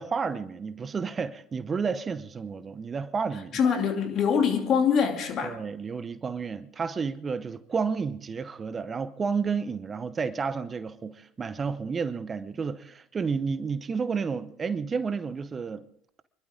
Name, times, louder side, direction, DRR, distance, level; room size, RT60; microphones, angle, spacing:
voice 1, 0.0-3.6 5.4-15.8, right 5 dB, 30° right, 0.8 m, -31 dB
voice 2, 3.5-5.6, left 7 dB, 45° left, 2.8 m, -24 dB
26.0 x 12.0 x 3.7 m
hypercardioid pair, 75°, 0 cm